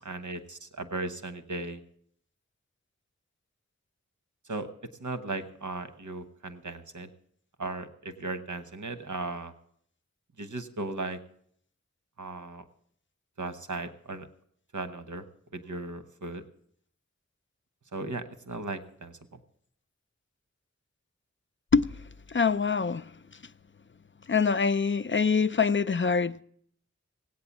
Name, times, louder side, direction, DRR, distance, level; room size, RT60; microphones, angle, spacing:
voice 1, 0.1-1.8 4.5-4.7 5.0-7.1 7.6-9.5 10.4-11.2 12.2-12.6 13.4-14.3 14.7-15.2 15.5-16.4 17.9-19.4, right 3 dB, 90° right, 1.0 m, -36 dB
voice 2, 22.3-23.1 24.3-26.4, left 5 dB, 40° left, 0.5 m, -24 dB
17.0 x 8.7 x 7.2 m
wide cardioid pair, 60°, 29 cm